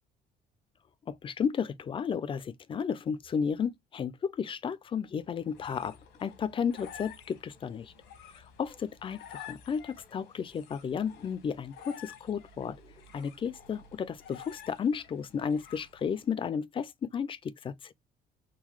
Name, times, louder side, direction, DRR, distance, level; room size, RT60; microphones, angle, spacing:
voice 1, 1.1-7.9 8.3-17.9, left 7 dB, 30° left, 0.4 m, -33 dB
sound 1, 5.2-16.3, left 8 dB, 85° left, 1.1 m, -51 dB
3.8 x 2.2 x 3.0 m
cardioid pair, 110°, 17 cm